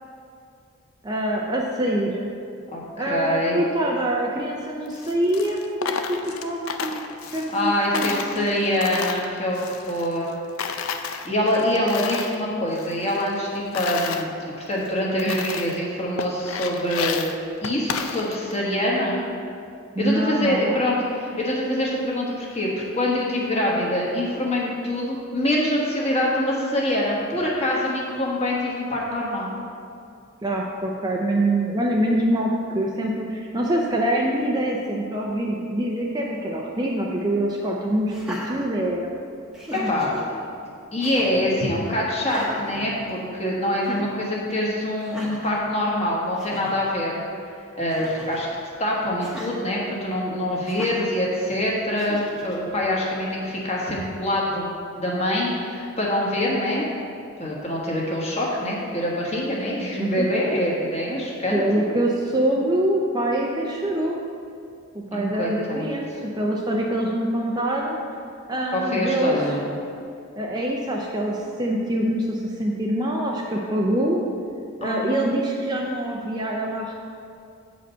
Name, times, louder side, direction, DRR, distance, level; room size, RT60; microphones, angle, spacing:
voice 1, 1.0-2.3 3.0-6.9 7.3-8.5 15.3-15.4 19.9-20.8 30.4-39.1 39.7-39.9 60.0-60.3 61.5-64.2 64.9-68.0 68.5-69.8 70.4-74.2 74.8-76.9, right 1 dB, 20° right, -2 dB, 0.5 m, -25 dB
voice 2, 2.7-3.7 7.5-10.3 11.2-14.3 14.7-17.2 17.6-19.2 20.0-29.5 39.9-40.4 40.9-47.2 47.8-48.5 48.8-54.7 54.9-56.8 57.4-61.8 65.1-65.8 68.7-69.7 74.8-75.1, left 1 dB, 30° left, -4 dB, 1.4 m, -25 dB
Coin (dropping), 4.9-7.7 7.9-10.3 10.6-12.4 12.7-14.2 14.8-14.9 15.2-15.8 16.2-18.6, left 6 dB, 75° left, 0.5 m, -32 dB
Laughter, 38.1-39.2 39.5-40.2 41.0-41.5 42.2-43.4 43.8-44.1 45.0-45.6 46.1-46.2 46.4-46.7 47.9-48.5 49.2-49.5 50.6-51.1 52.0-52.6, equal, 5° right, 0.9 m, -37 dB
8.1 x 5.1 x 5.5 m, 2.4 s
head